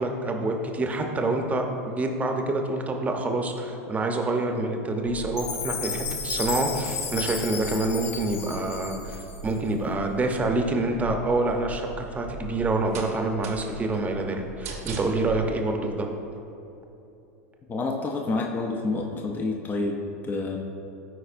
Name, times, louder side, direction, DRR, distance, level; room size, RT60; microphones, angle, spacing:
voice 1, 0.0-16.1, right 2 dB, 20° right, 3 dB, 0.8 m, -27 dB
sound 1, 5.1-15.6, right 3 dB, 80° right, 1.0 m, -41 dB
Chime, 5.4-9.6, left 6 dB, 75° left, 0.8 m, -33 dB
voice 2, 17.7-20.6, left 3 dB, 25° left, 2 dB, 0.6 m, -28 dB
13.0 x 4.7 x 2.6 m, 2.9 s
hypercardioid pair, 105°, 8 cm